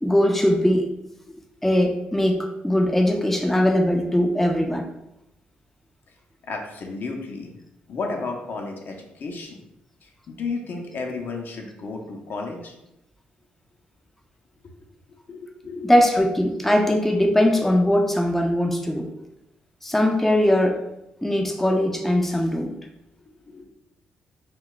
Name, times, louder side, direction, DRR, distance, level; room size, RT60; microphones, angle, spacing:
voice 1, 0.0-0.9 1.6-4.9 15.8-19.1 19.8-20.8 21.2-22.8, left 1 dB, 5° left, 2 dB, 0.4 m, -20 dB
voice 2, 6.4-7.5 7.9-9.6 10.0-12.7 15.3-15.9 23.5-23.6, left 3 dB, 55° left, 2 dB, 0.6 m, -33 dB
2.3 x 2.2 x 3.7 m, 0.88 s
hypercardioid pair, 50°, 4 cm